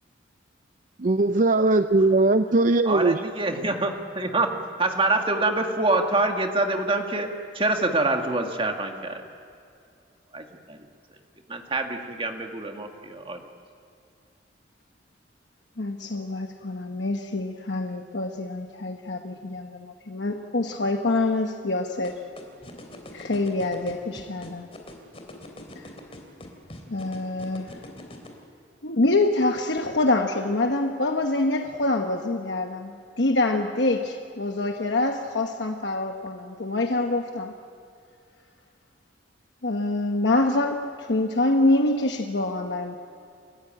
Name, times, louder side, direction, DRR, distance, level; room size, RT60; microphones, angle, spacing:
voice 1, 1.0-3.2, right 2 dB, 45° right, 10 dB, 0.5 m, -20 dB
voice 2, 2.9-7.3 7.5-9.2 10.3-10.8 11.5-13.4, right 2 dB, 30° right, 4 dB, 1.9 m, -26 dB
voice 3, 15.8-22.2 23.1-24.7 26.9-27.8 28.8-37.5 39.6-43.0, left 2 dB, 65° left, 4 dB, 1.1 m, -25 dB
sound 1, 22.0-28.3, left 1 dB, 35° left, 3.2 m, -42 dB
29.0 x 14.5 x 8.9 m, 2.4 s
head